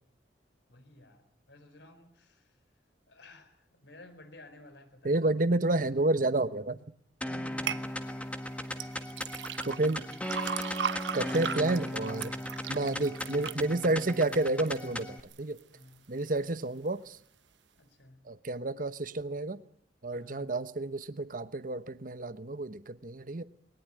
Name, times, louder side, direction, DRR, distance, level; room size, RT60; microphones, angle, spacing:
voice 1, 0.7-2.6 3.1-5.3 7.2-8.2 8.7-9.7 10.0-10.1 15.7-16.1 17.8-18.2 20.1-20.5, left 1 dB, 75° left, 10 dB, 4.2 m, -54 dB
voice 2, 5.0-6.8 9.6-10.0 11.1-12.3 12.7-15.6 16.1-17.2 18.2-19.6 20.0-23.4, right 2 dB, 50° right, 14 dB, 1.0 m, -30 dB
sound 1, 7.2-15.2, left 1 dB, 10° left, 1.6 m, -37 dB
sound 2, 7.7-7.8 8.7-14.9 15.3-15.8 16.3-16.4, right 7 dB, 90° right, 1.0 m, -37 dB
21.5 x 19.0 x 9.9 m, 0.65 s
head